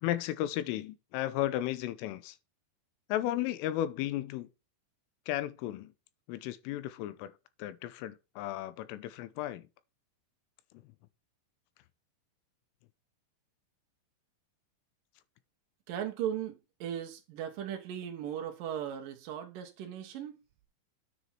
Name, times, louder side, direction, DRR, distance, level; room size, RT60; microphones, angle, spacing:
voice 1, 0.0-2.4 3.1-4.5 5.3-5.9 6.3-9.7, left 13 dB, 90° left, 3.4 m, -34 dB
voice 2, 15.9-20.4, right 10 dB, 80° right, 1.9 m, -37 dB
9.6 x 5.3 x 4.4 m
omnidirectional pair, 5.7 m